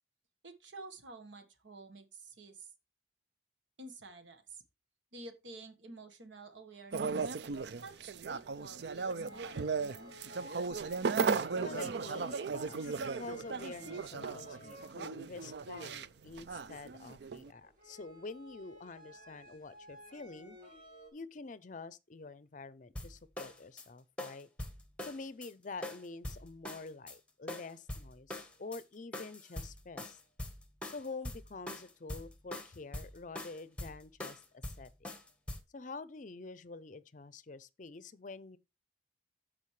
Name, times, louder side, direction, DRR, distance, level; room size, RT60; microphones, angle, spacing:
voice 1, 0.4-2.7 3.8-4.6 5.1-7.4 7.8-10.1, right 3 dB, 85° right, 1.4 m, -51 dB
sound 1, 6.9-17.5, right 5 dB, 65° right, 0.4 m, -36 dB
sound 2, 8.0-8.5 9.0-15.0 15.3-16.8 17.3-21.1, equal, 45° right, 4.6 m, -54 dB
voice 2, 11.6-20.7 21.1-24.5 25.0-30.2 30.9-35.1 35.7-38.6, left 3 dB, 45° left, 0.5 m, -47 dB
sound 3, 23.0-23.9 24.2-25.5 25.8-27.2 27.5-28.8 29.1-35.6, left 1 dB, 5° left, 1.2 m, -43 dB
14.0 x 5.1 x 3.2 m
head